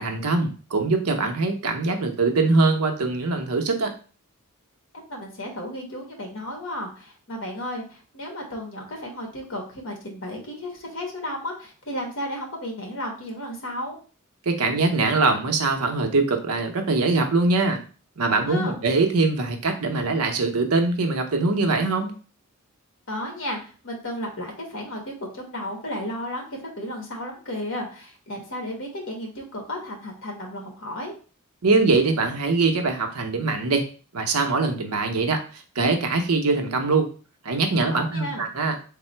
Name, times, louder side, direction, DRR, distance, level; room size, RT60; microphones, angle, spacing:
voice 1, 0.0-3.9 14.5-17.8 18.2-22.1 31.6-33.8 34.1-37.1 37.4-38.8, right 3 dB, 75° right, 4 dB, 0.7 m, -22 dB
voice 2, 4.9-14.0 18.3-18.8 23.1-31.1 37.9-38.4, left 1 dB, 60° left, 0 dB, 1.3 m, -33 dB
3.6 x 2.0 x 4.3 m, 0.37 s
head